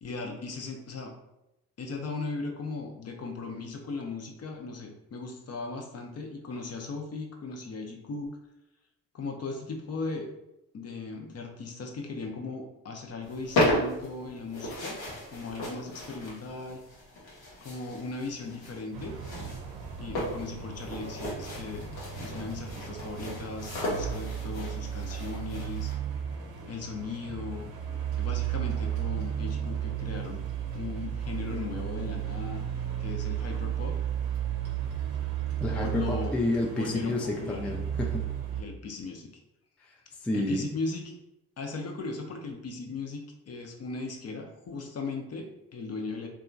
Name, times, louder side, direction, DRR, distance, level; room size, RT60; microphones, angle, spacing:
voice 1, 0.0-1.1 1.8-8.3 9.1-10.3 10.7-15.0 15.3-16.8 17.6-19.2 20.0-25.9 26.6-27.7 28.2-30.4 30.7-32.6 33.0-33.9 35.7-36.4 36.8-37.6 38.0-38.2 38.5-39.3 40.3-41.1 41.6-46.3, left 3 dB, 40° left, 2 dB, 0.6 m, -37 dB
sound 1, 13.2-25.9, left 1 dB, 90° left, 0.9 m, -35 dB
sound 2, 18.9-38.6, right 10 dB, 70° right, 0.6 m, -34 dB
voice 2, 35.6-38.2 39.8-40.6, left 1 dB, 5° left, 1 dB, 0.3 m, -30 dB
2.8 x 2.4 x 2.6 m, 0.91 s
supercardioid pair, 50°, 37 cm